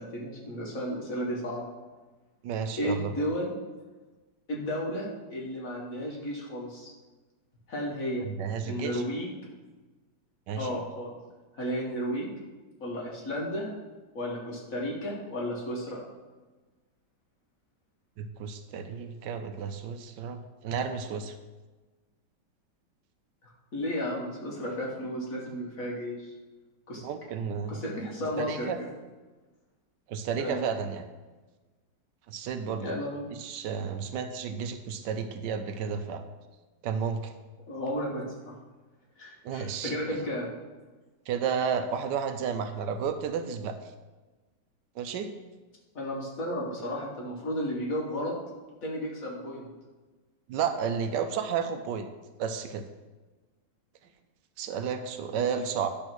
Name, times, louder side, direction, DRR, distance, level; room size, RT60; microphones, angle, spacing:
voice 1, 0.0-1.6 2.8-3.5 4.5-6.9 7.7-8.2 8.7-9.3 10.6-11.1 11.5-12.3 12.8-13.7 14.1-16.0 23.4-26.2 26.9-27.0 27.7-28.9 30.3-30.6 32.8-33.2 37.7-38.5 39.2-40.5 46.0-48.3 48.8-49.7 55.3-55.4, equal, 50° left, -3 dB, 2.1 m, -33 dB
voice 2, 2.4-3.1 8.2-9.0 10.5-10.8 18.2-21.4 27.0-27.8 28.4-28.8 30.1-31.0 32.3-33.0 33.4-36.2 36.8-37.3 39.4-40.2 41.3-43.8 45.0-45.3 50.5-52.1 52.4-52.8 54.6-55.9, right 7 dB, 80° right, 7 dB, 1.2 m, -32 dB
10.0 x 3.5 x 6.1 m, 1.3 s
omnidirectional pair, 1.9 m